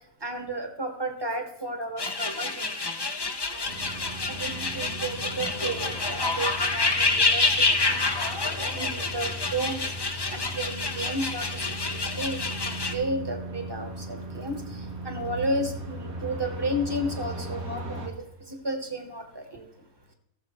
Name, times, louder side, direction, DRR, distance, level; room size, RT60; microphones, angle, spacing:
voice 1, 0.2-2.7 3.5-3.7 4.3-12.5 12.9-18.1 18.5-19.7, right 1 dB, 20° right, 4 dB, 1.3 m, -33 dB
sound 1, 2.0-12.9, left 3 dB, 30° left, 0.5 m, -28 dB
sound 2, 3.7-18.1, equal, 90° right, 2.0 m, -38 dB
17.5 x 7.1 x 3.2 m, 0.85 s
omnidirectional pair, 1.4 m